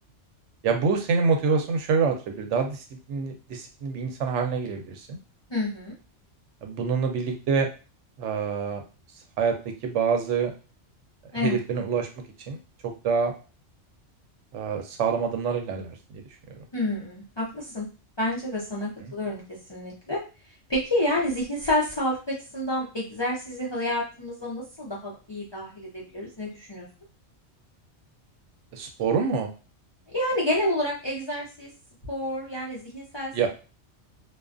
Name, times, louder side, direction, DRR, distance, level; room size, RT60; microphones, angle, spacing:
voice 1, 0.6-5.2 6.6-7.7 8.2-8.8 9.4-9.5 9.8-10.5 11.3-12.1 12.5-12.6 13.0-13.3 14.5-16.2 16.5-16.6 19.0-19.1 28.7-29.5 33.3-33.5, right 5 dB, 80° right, 4 dB, 0.9 m, -26 dB
voice 2, 5.5-5.9 11.3-11.6 16.7-17.9 18.2-19.4 19.7-20.2 20.7-26.9 30.1-31.7 32.1-33.5, left 1 dB, 35° left, -5 dB, 0.4 m, -29 dB
2.4 x 2.3 x 2.4 m, 0.32 s
omnidirectional pair, 1.2 m